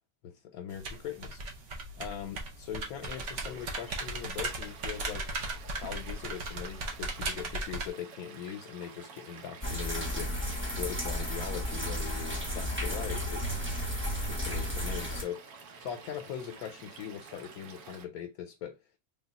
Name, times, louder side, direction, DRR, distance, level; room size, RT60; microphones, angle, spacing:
voice 1, 0.2-1.4 2.0-5.2 5.8-10.4 10.8-13.4 14.1-18.8, left 9 dB, 80° left, 1.1 m, -41 dB
sound 1, 0.7-7.9, right 2 dB, 60° right, 1.0 m, -37 dB
Stream / Liquid, 3.0-18.0, right 5 dB, 90° right, 1.2 m, -50 dB
sound 2, 9.6-15.2, equal, 15° right, 0.5 m, -33 dB
3.5 x 2.3 x 4.0 m
omnidirectional pair, 1.5 m